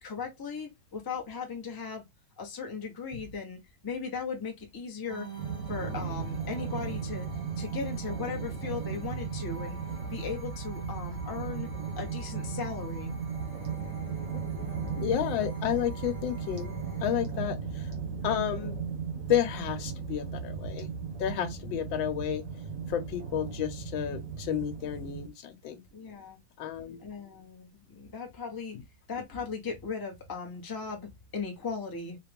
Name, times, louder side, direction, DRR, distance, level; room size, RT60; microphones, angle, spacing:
voice 1, 0.0-2.0 2.4-5.3 5.7-9.8 10.1-11.7 12.0-13.1 21.7-21.8 25.9-26.4 27.0-28.8 29.1-32.2, left 5 dB, 15° left, 0.8 m, -37 dB
sound 1, 5.1-17.2, right 3 dB, 30° right, 0.4 m, -48 dB
sound 2, 5.4-25.3, right 6 dB, 50° right, 1.3 m, -36 dB
voice 2, 14.0-14.4 15.0-16.8 17.0-17.9 18.2-18.8 19.3-20.9 21.2-22.4 22.9-25.8 26.6-27.0, left 10 dB, 80° left, 1.5 m, -31 dB
4.4 x 2.4 x 3.4 m
omnidirectional pair, 2.1 m